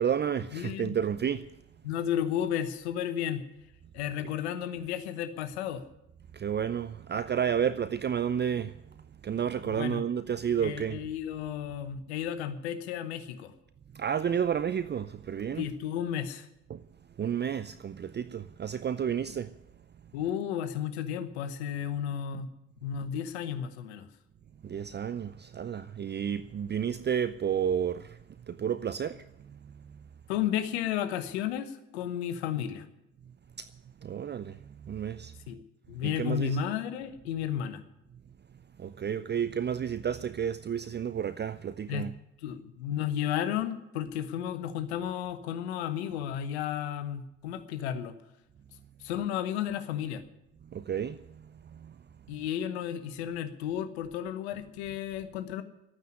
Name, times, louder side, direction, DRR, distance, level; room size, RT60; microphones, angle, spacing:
voice 1, 0.0-1.5 6.3-11.1 13.9-15.7 16.7-16.8 17.2-19.5 24.6-28.2 28.5-30.0 33.6-33.7 34.0-35.3 36.0-36.6 38.8-42.1 50.6-52.0, right 8 dB, 35° right, 0.6 m, -31 dB
voice 2, 0.5-0.9 1.8-3.4 3.9-5.8 9.6-10.0 10.6-13.5 15.6-16.5 20.1-22.5 22.8-24.1 30.3-32.8 35.5-35.6 35.9-37.8 41.9-42.1 42.4-48.1 49.0-50.2 52.3-55.6, left 9 dB, 80° left, 1.1 m, -33 dB
12.5 x 9.2 x 9.7 m
hypercardioid pair, 45°, 32 cm